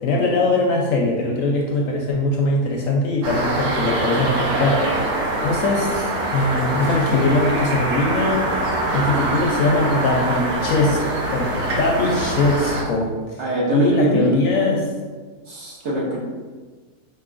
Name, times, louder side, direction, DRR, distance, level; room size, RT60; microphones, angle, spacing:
voice 1, 0.0-4.8 5.4-8.4 8.9-11.0 11.3-13.4 13.7-14.8, left 2 dB, 70° left, -1 dB, 0.9 m, -21 dB
sound 1, 3.2-12.8, right 2 dB, 75° right, 1.2 m, -23 dB
voice 2, 13.4-14.8 15.4-16.2, right 1 dB, 55° right, -5 dB, 1.0 m, -22 dB
4.6 x 2.6 x 2.5 m, 1.4 s
omnidirectional pair, 1.6 m